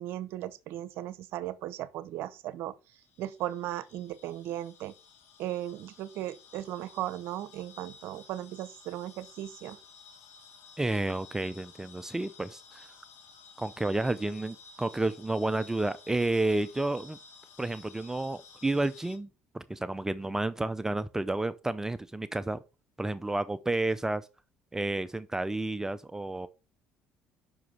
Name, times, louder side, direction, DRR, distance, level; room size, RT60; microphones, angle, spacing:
voice 1, 0.0-2.7 3.2-4.9 5.4-9.8, right 13 dB, 70° right, 0.7 m, -37 dB
sound 1, 2.9-19.2, left 5 dB, 65° left, 1.5 m, -54 dB
voice 2, 10.8-12.9 13.6-17.2 17.6-19.3 19.5-22.6 23.0-24.3 24.7-26.5, right 2 dB, 10° right, 0.5 m, -31 dB
6.0 x 4.9 x 5.3 m
supercardioid pair, 80°, 4 cm